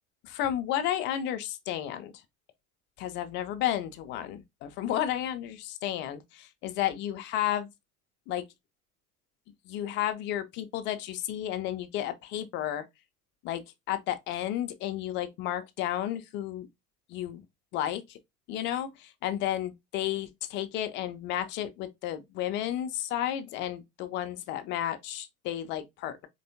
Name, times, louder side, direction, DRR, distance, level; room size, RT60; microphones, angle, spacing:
voice 1, 0.2-2.1 3.0-7.7 8.3-8.4 9.7-12.8 13.4-13.6 13.9-16.7 17.1-17.4 17.7-18.2 18.5-26.3, left 12 dB, 25° left, 0.4 m, -32 dB
4.4 x 3.3 x 2.7 m
figure-of-eight pair, 75°, 47 cm